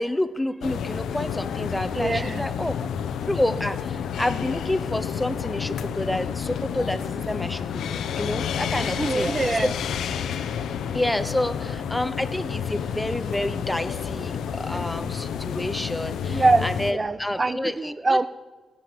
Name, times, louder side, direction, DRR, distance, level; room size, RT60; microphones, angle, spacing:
voice 1, 0.0-2.7 3.3-9.3 10.9-18.2, left 1 dB, 10° left, 11 dB, 0.9 m, -29 dB
sound 1, 0.6-16.9, left 8 dB, 85° left, 0.8 m, -30 dB
voice 2, 1.9-2.4 8.7-9.7 14.7-14.8 16.2-18.3, right 3 dB, 30° right, 14 dB, 0.4 m, -24 dB
16.5 x 6.9 x 9.3 m, 1.3 s
cardioid pair, 75°, 0 cm